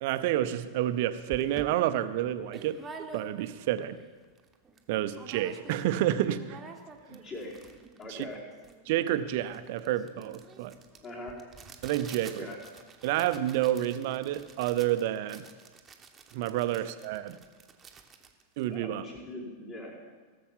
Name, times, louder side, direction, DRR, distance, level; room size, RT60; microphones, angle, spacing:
voice 1, 0.0-2.8 3.1-4.0 4.9-6.6 8.1-8.2 8.9-10.7 11.8-12.5 13.0-15.5 16.3-17.4 18.6-19.0, right 13 dB, 50° right, 12 dB, 0.7 m, -29 dB
sound 1, 0.8-0.9 1.3-3.7 4.1-4.2 4.4-4.8 5.1-6.0 6.2-19.3, right 4 dB, 20° right, 1.2 m, -49 dB
voice 2, 7.2-7.6 8.0-8.4 11.0-11.4 12.2-12.6 16.7-16.8 18.7-20.1, left 1 dB, 30° left, -3 dB, 4.3 m, -41 dB
18.0 x 7.0 x 5.7 m, 1.4 s
figure-of-eight pair, 90°, 0 cm